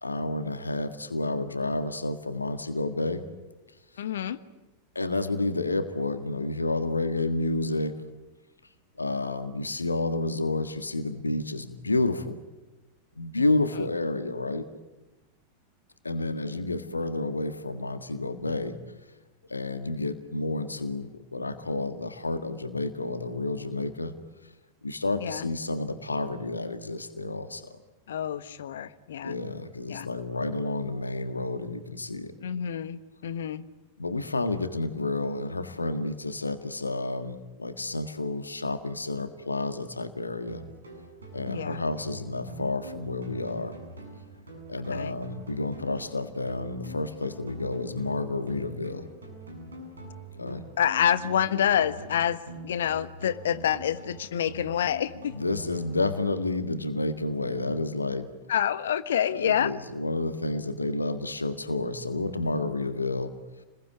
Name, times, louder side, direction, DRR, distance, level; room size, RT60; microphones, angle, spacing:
voice 1, 0.0-3.2 5.0-8.0 9.0-12.4 13.2-14.7 16.0-18.8 19.5-24.1 24.8-27.7 29.2-32.3 34.0-40.6 41.3-43.8 44.7-49.1 50.3-50.6 55.3-58.3 59.3-63.3, left 2 dB, 80° left, 9 dB, 1.7 m, -30 dB
voice 2, 4.0-4.4 13.8-13.9 25.2-25.5 28.1-29.3 29.9-30.1 32.4-33.6 41.5-41.8 44.9-45.1 50.4-55.4 58.5-59.7, left 9 dB, 60° left, 14 dB, 1.3 m, -28 dB
sound 1, 40.5-56.5, right 1 dB, 75° right, 7.8 m, -44 dB
29.5 x 21.0 x 9.5 m, 1.1 s
figure-of-eight pair, 90°, 0 cm